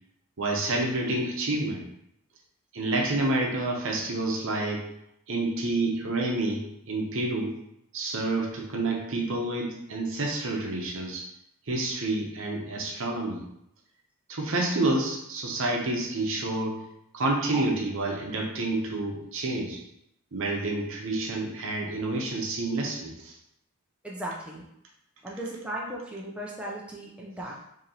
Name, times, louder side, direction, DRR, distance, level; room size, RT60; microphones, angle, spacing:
voice 1, 0.4-1.8 2.7-4.8 5.3-7.5 7.9-11.2 11.7-13.4 14.3-16.8 17.1-19.8 20.3-23.3, right 2 dB, 60° right, 0 dB, 0.8 m, -29 dB
voice 2, 24.0-24.6 25.2-27.7, right 1 dB, 5° right, -4 dB, 0.4 m, -36 dB
2.9 x 2.8 x 3.8 m, 0.78 s
head